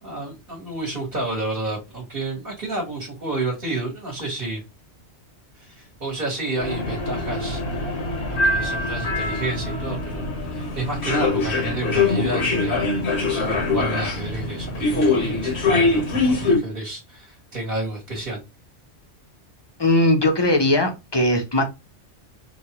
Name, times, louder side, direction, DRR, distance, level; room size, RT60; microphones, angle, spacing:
voice 1, 0.0-4.6 5.6-7.6 8.3-18.4, right 2 dB, 45° right, -2 dB, 1.5 m, -30 dB
sound 1, 6.6-16.6, left 3 dB, 65° left, 1.2 m, -23 dB
voice 2, 19.8-21.6, left 1 dB, 25° left, 3 dB, 0.7 m, -19 dB
4.9 x 2.3 x 2.9 m, 0.24 s
omnidirectional pair, 1.2 m